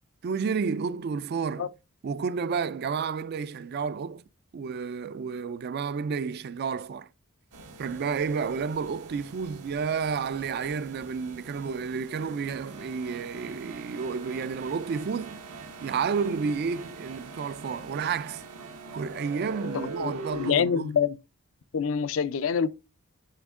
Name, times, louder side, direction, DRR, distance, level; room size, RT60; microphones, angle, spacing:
voice 1, 0.2-1.7 2.0-4.2 4.5-7.1 7.8-15.5 15.8-18.4 18.9-20.9, right 5 dB, 45° right, 0.3 m, -31 dB
sound 1, 7.5-20.5, right 3 dB, 90° right, 1.3 m, -43 dB
voice 2, 19.7-21.2 21.7-22.7, left 7 dB, 60° left, 0.4 m, -26 dB
8.3 x 3.6 x 3.6 m
head